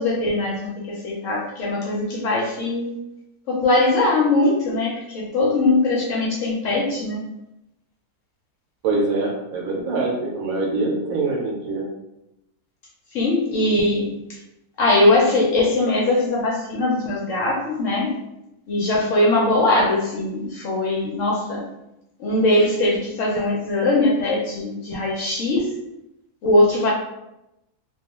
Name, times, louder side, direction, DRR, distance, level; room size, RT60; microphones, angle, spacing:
voice 1, 0.0-2.9 3.5-7.2 13.1-14.1 14.8-18.1 18.7-21.6 22.2-25.7 26.4-26.9, left 2 dB, 70° left, -3 dB, 0.8 m, -21 dB
voice 2, 8.8-11.9, right 3 dB, 70° right, -2 dB, 1.0 m, -24 dB
2.4 x 2.3 x 2.9 m, 0.88 s
omnidirectional pair, 1.6 m